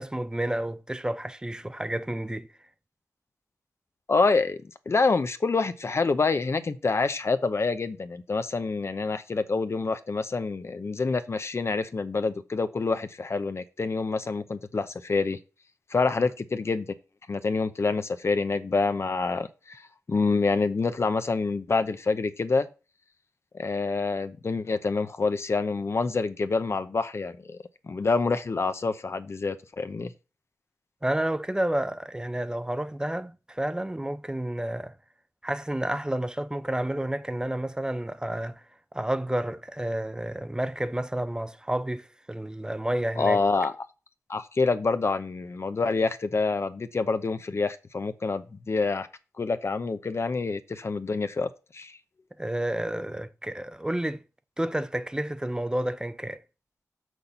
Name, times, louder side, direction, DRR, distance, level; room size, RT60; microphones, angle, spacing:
voice 1, 0.0-2.5 31.0-34.9 35.4-38.6 38.9-43.4 52.4-54.2 54.6-56.4, right 1 dB, 15° right, 0.6 m, -30 dB
voice 2, 4.1-15.4 15.9-16.9 17.3-19.8 20.1-22.7 23.6-27.6 27.8-30.1 43.2-43.7 44.3-49.1 49.4-52.0, left 4 dB, 50° left, 0.7 m, -27 dB
6.2 x 5.7 x 6.8 m
wide cardioid pair, 75°, 6 cm